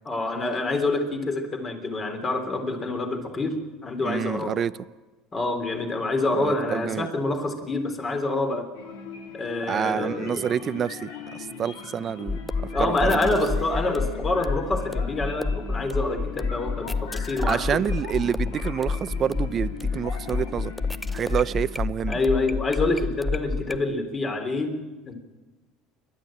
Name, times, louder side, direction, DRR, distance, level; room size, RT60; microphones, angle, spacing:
voice 1, 0.1-4.6 5.3-8.7 9.3-10.5 12.7-17.8 22.1-24.8 25.1-25.2, left 2 dB, 25° left, 5 dB, 3.5 m, -27 dB
voice 2, 4.0-4.7 6.4-7.1 9.7-11.1 11.6-12.4 12.8-13.4 17.5-20.7 21.1-22.2, right 8 dB, 35° right, 16 dB, 0.6 m, -27 dB
sound 1, 8.7-21.8, left 6 dB, 90° left, 3.6 m, -40 dB
sound 2, 12.3-23.8, left 4 dB, 5° left, 0.6 m, -29 dB
28.0 x 12.0 x 8.8 m, 1.3 s
supercardioid pair, 125°, 0 cm